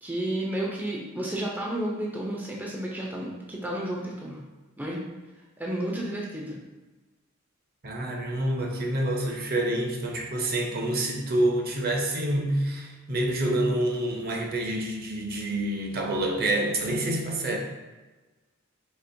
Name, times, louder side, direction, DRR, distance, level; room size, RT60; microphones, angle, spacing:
voice 1, 0.0-4.4 4.8-5.0 5.6-6.6, right 1 dB, 10° right, -3 dB, 0.4 m, -32 dB
voice 2, 7.8-17.6, right 1 dB, 50° right, 1 dB, 0.6 m, -27 dB
4.3 x 2.9 x 2.6 m, 1.2 s
head